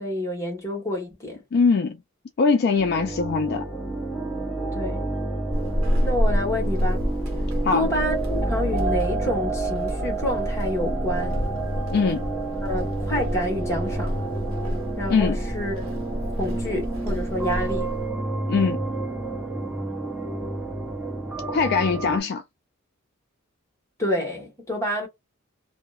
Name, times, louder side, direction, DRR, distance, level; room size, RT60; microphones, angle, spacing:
voice 1, 0.0-1.4 4.7-5.1 6.0-7.1 7.7-11.4 12.6-14.2 15.0-15.8 16.4-17.9 24.0-25.1, left 1 dB, 15° left, 1.1 m, -28 dB
voice 2, 1.5-2.0 2.4-3.6 7.6-7.9 11.9-12.3 15.1-15.4 18.5-18.8 21.5-22.4, left 5 dB, 50° left, 0.3 m, -21 dB
sound 1, 2.8-22.2, right 2 dB, 5° right, 0.7 m, -29 dB
Walk footsteps / Squeak, 5.5-18.2, equal, 75° right, 0.8 m, -29 dB
2.7 x 2.0 x 2.3 m
head